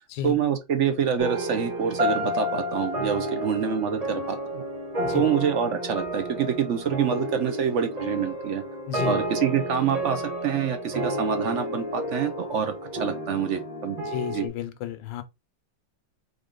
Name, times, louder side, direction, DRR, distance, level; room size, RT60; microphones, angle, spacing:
voice 1, 0.2-4.6 5.1-8.6 9.0-14.0 14.3-14.5, right 8 dB, 65° right, 0.7 m, -26 dB
sound 1, 1.2-14.5, equal, 25° right, 1.0 m, -31 dB
voice 2, 8.9-9.2 14.0-15.2, left 8 dB, 85° left, 1.4 m, -32 dB
3.8 x 3.6 x 3.7 m
omnidirectional pair, 2.0 m